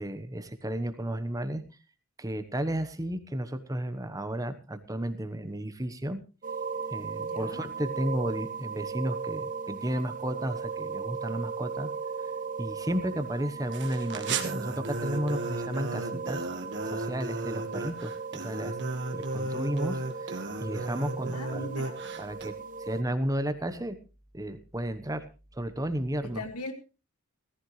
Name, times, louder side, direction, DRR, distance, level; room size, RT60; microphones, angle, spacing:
voice 1, 0.0-1.6 2.2-6.2 6.9-11.9 12.6-16.5 16.9-18.8 19.1-21.7 22.2-22.5 22.8-24.0 24.3-25.3 25.5-26.4, right 1 dB, 15° right, 10 dB, 1.1 m, -33 dB
sound 1, 6.4-23.0, right 5 dB, 35° right, 1.1 m, -37 dB
voice 2, 7.2-7.6 21.3-22.2 26.2-26.7, left 2 dB, 90° left, 7 dB, 2.2 m, -40 dB
sound 2, 13.7-22.5, right 2 dB, 55° right, 1.7 m, -35 dB
17.5 x 14.5 x 3.2 m, 0.32 s
head